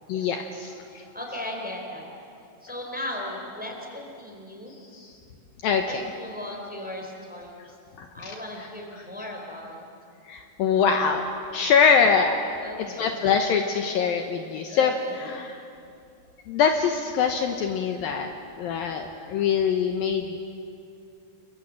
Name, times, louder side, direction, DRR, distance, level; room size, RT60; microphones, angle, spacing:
voice 1, 0.1-1.0 4.9-5.1 5.6-5.8 8.0-8.4 10.3-11.2 11.5-12.5 13.0-15.6 16.5-18.3 18.6-20.4, left 6 dB, 70° left, 4 dB, 2.6 m, -24 dB
voice 2, 0.9-2.0 2.6-4.8 5.9-7.8 8.1-9.8 12.6-13.2 14.7-15.2, left 1 dB, ahead, 1 dB, 3.7 m, -37 dB
30.0 x 23.0 x 7.7 m, 2.6 s
omnidirectional pair, 4.7 m